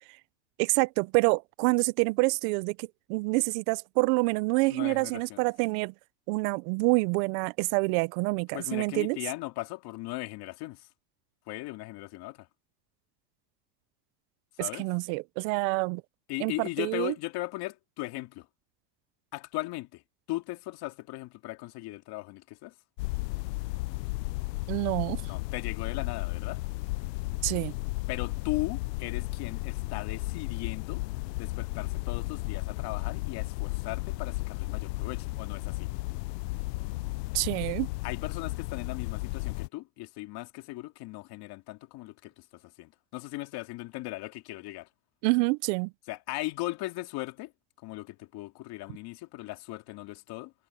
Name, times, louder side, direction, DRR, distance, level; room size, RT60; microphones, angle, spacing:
voice 1, 0.6-5.9 6.3-9.2 14.8-16.0 16.4-16.5 16.8-17.1 24.7-25.2 27.4-27.7 37.3-37.9 45.2-45.9, right 26 dB, 60° right, 0.6 m, -27 dB
voice 2, 4.7-5.4 8.5-10.9 11.5-12.5 14.5-14.9 16.3-18.5 19.3-20.0 20.3-22.8 25.2-26.6 28.1-31.0 31.4-35.9 38.0-44.9 46.1-47.5 47.8-50.5, left 19 dB, 50° left, 2.4 m, -38 dB
sound 1, 23.0-39.7, left 22 dB, 85° left, 0.6 m, -34 dB
supercardioid pair, 140°, 48 cm